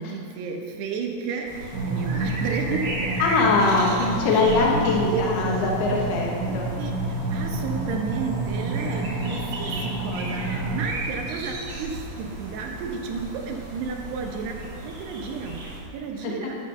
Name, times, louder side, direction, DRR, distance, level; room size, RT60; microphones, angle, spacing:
voice 1, 0.0-3.1 4.3-4.7 5.0-5.2 6.5-16.6, right 5 dB, 75° right, 1 dB, 3.0 m, -32 dB
sound 1, 1.4-15.8, right 2 dB, 50° right, 2.7 m, -35 dB
sound 2, 1.7-10.8, right 2 dB, 45° left, 1.0 m, -29 dB
voice 2, 3.2-6.7 16.2-16.3, left 3 dB, 70° left, -1 dB, 2.9 m, -22 dB
12.0 x 7.5 x 6.4 m, 2.4 s
omnidirectional pair, 5.1 m